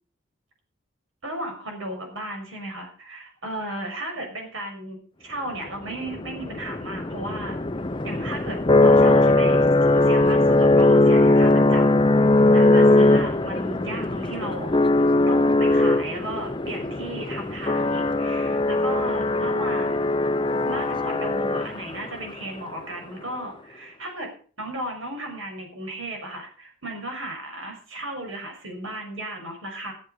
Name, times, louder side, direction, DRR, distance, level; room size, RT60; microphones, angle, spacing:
voice 1, 1.2-7.6 8.0-12.0 12.5-14.7 15.3-20.1 20.7-24.3 24.6-29.9, right 1 dB, 70° right, 2 dB, 6.0 m, -35 dB
sound 1, 5.9-22.1, left 2 dB, 25° left, 0.6 m, -20 dB
14.5 x 8.1 x 6.7 m, 0.42 s
head